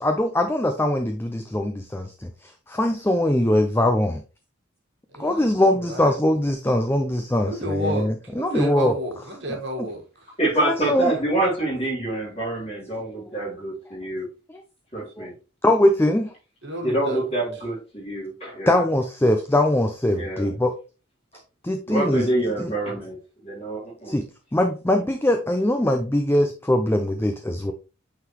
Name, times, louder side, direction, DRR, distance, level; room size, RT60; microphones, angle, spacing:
voice 1, 0.0-4.2 5.2-8.9 9.5-9.6 10.6-11.1 15.2-15.3 15.6-16.3 18.7-20.7 21.6-22.2 22.6-22.7 24.0-24.2 24.5-27.7, left 1 dB, 10° left, 0.5 m, -22 dB
voice 2, 5.1-6.2 7.4-10.0 16.6-17.2, right 1 dB, 55° right, 1.6 m, -31 dB
voice 3, 10.4-14.3 14.9-15.3 16.8-18.8 20.1-20.5 21.9-23.2 23.4-24.1, right 2 dB, 30° left, 3.4 m, -26 dB
8.5 x 3.9 x 3.0 m
head